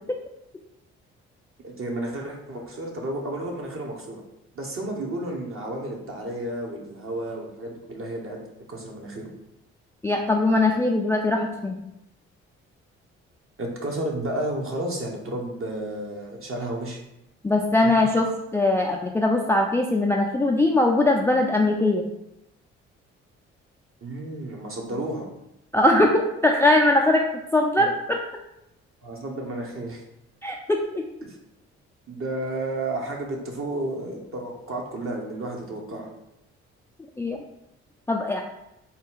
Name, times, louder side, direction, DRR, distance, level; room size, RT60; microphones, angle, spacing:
voice 1, 1.6-4.2 4.5-8.4 8.7-9.3 13.6-17.0 24.0-25.3 27.8-27.9 29.0-30.0 31.2-31.4 32.1-36.1, right 1 dB, 40° right, 0 dB, 1.1 m, -32 dB
voice 2, 10.0-11.8 17.4-18.3 18.5-22.0 25.7-27.2 27.5-28.2 30.4-31.0 37.2-37.4 38.1-38.4, left 2 dB, 10° left, 1 dB, 0.4 m, -21 dB
3.9 x 2.3 x 3.8 m, 0.86 s
hypercardioid pair, 45°, 33 cm